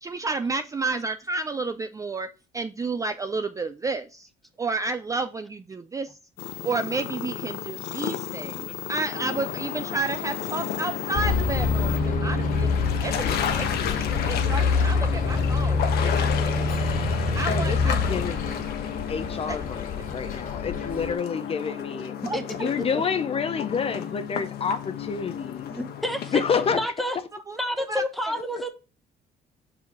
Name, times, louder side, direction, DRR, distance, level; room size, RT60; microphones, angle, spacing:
voice 1, 0.0-2.3 2.5-4.3 4.6-6.2 6.6-12.7 13.0-16.7 17.3-18.1 19.5-19.6 22.3-22.4 27.5-27.6 27.9-28.0, right 3 dB, 20° right, 0.4 m, -31 dB
sound 1, 6.4-12.0, left 12 dB, 90° left, 0.8 m, -34 dB
sound 2, 9.1-26.9, left 8 dB, 70° left, 1.1 m, -33 dB
Bus, 11.1-21.1, left 4 dB, 55° left, 2.1 m, -26 dB
voice 2, 17.5-18.8 19.1-22.2 22.6-25.7 26.3-26.8, left 6 dB, 35° left, 0.6 m, -28 dB
voice 3, 22.3-22.7 25.7-26.4 26.7-27.2 27.5-28.7, left 1 dB, ahead, 1.1 m, -29 dB
5.7 x 4.8 x 4.7 m
cardioid pair, 110°, 17 cm